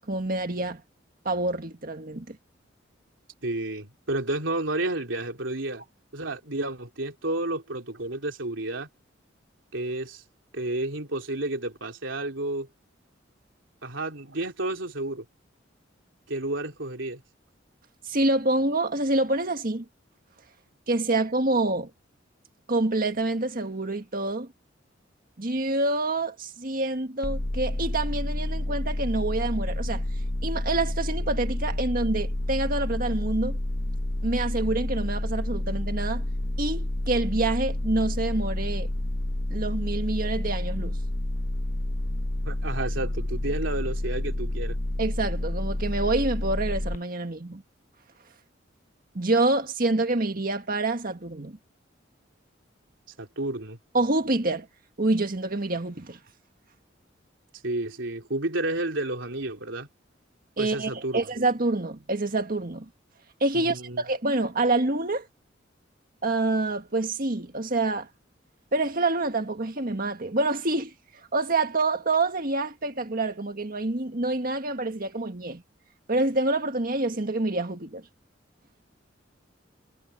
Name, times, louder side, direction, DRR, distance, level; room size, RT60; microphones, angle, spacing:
voice 1, 0.1-0.8 1.3-2.4 18.0-19.9 20.9-21.9 22.7-24.5 25.4-30.0 30.4-33.6 34.2-36.3 36.6-38.9 39.5-41.0 45.0-47.6 49.2-51.6 53.9-54.7 55.0-56.2 60.6-62.9 63.4-65.3 66.2-68.1 68.7-75.6 76.1-78.0, right 2 dB, 50° right, 1.8 m, -27 dB
voice 2, 3.4-5.8 6.1-8.9 9.7-10.2 10.5-12.7 13.8-15.2 16.3-17.2 42.4-44.8 53.2-53.8 57.6-59.9 60.6-61.2 63.6-64.0, right 2 dB, 80° right, 3.4 m, -31 dB
sound 1, 27.2-47.0, left 1 dB, 40° left, 1.0 m, -29 dB
head